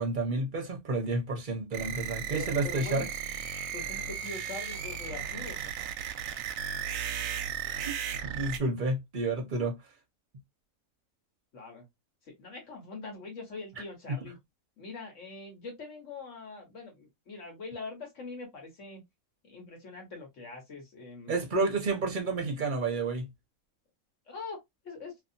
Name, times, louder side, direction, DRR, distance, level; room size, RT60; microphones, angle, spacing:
voice 1, 0.0-3.1 7.6-8.0 8.2-9.8 14.1-14.2 21.3-23.3, right 3 dB, 45° right, 0.8 m, -30 dB
sound 1, 1.7-8.6, right 8 dB, 70° right, 0.9 m, -35 dB
voice 2, 2.3-3.1 3.7-5.6 11.5-11.9 12.4-14.4 14.8-19.0 19.4-21.3 24.3-24.6 24.8-25.1, left 3 dB, 55° left, 1.5 m, -43 dB
2.8 x 2.6 x 2.6 m
omnidirectional pair, 1.5 m